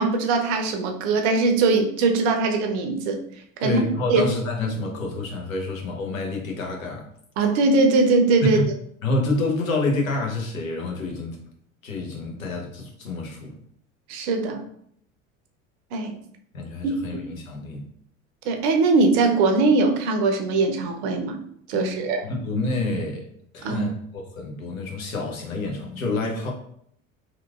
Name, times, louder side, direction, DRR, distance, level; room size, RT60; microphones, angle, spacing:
voice 1, 0.0-3.2 3.6-3.8 4.1-4.2 7.4-8.6 14.1-14.7 15.9-16.2 16.8-17.2 18.5-21.4 21.7-22.2 23.6-23.8, right 3 dB, 55° right, 5 dB, 0.6 m, -21 dB
voice 2, 3.6-7.1 8.4-8.6 9.0-11.4 11.8-13.5 16.5-17.9 21.7-23.3 23.5-26.5, left 2 dB, 85° left, 1 dB, 0.7 m, -28 dB
2.9 x 2.4 x 2.3 m, 0.67 s
figure-of-eight pair, 75°, 40 cm